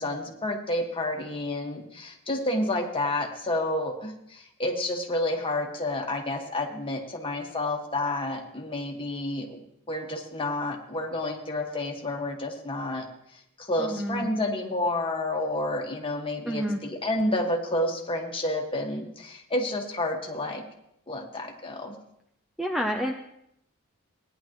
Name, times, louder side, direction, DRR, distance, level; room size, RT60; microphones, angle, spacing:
voice 1, 0.0-9.6 9.9-13.1 13.6-20.6 21.1-22.0, left 1 dB, 25° left, 1 dB, 1.6 m, -30 dB
voice 2, 13.8-14.3 16.5-16.8 22.6-23.1, equal, ahead, 2 dB, 0.5 m, -29 dB
17.5 x 10.5 x 3.1 m, 0.76 s
head